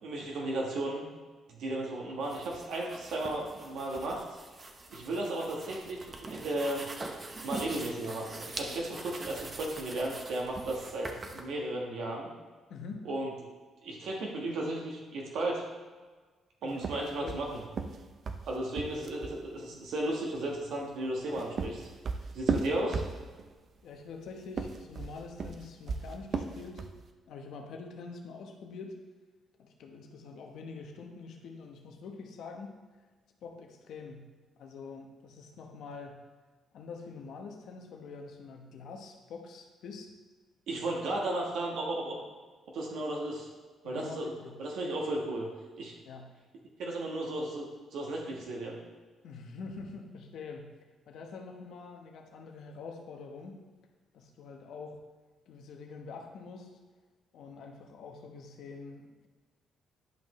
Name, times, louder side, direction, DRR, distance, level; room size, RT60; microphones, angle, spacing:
voice 1, 0.0-1.0 1.5-4.2 4.9-6.8 7.4-12.3 13.0-13.3 13.8-15.6 16.6-17.6 18.5-21.9 22.3-23.0 40.7-42.1 42.7-43.5 43.8-44.3 44.6-45.5 45.8-45.9 46.8-48.8, right 1 dB, 75° right, -1 dB, 1.4 m, -34 dB
sound 1, 2.2-11.4, right 2 dB, 30° right, 0.9 m, -43 dB
voice 2, 12.7-13.1 16.6-17.4 23.8-26.8 27.3-29.0 29.6-32.7 33.4-34.3 34.6-36.2 36.7-40.1 40.8-40.9 43.8-44.5 46.1-46.3 49.2-50.7 51.1-53.6 54.1-55.0 55.5-56.7 57.3-59.3, left 4 dB, 75° left, 3 dB, 1.1 m, -45 dB
sound 2, 16.8-19.4 21.1-23.5 24.4-27.0, right 5 dB, 50° right, 0.6 m, -35 dB
11.0 x 5.4 x 3.2 m, 1.4 s
cardioid pair, 90°, 0 cm